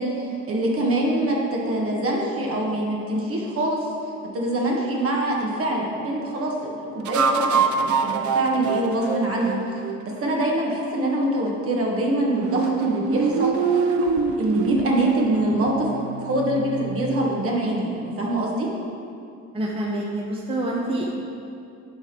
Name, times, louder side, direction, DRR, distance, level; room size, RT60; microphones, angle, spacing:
voice 1, 0.0-3.9 4.3-14.0 14.4-15.9 16.2-18.7, right 1 dB, 50° right, -2 dB, 1.4 m, -24 dB
sound 1, 4.7-4.9 7.1-10.4 12.4-17.3, right 5 dB, 80° right, 0.6 m, -25 dB
voice 2, 19.5-21.3, right 1 dB, 20° right, -3 dB, 0.7 m, -27 dB
9.9 x 3.6 x 5.9 m, 2.6 s
cardioid pair, 145°, 29 cm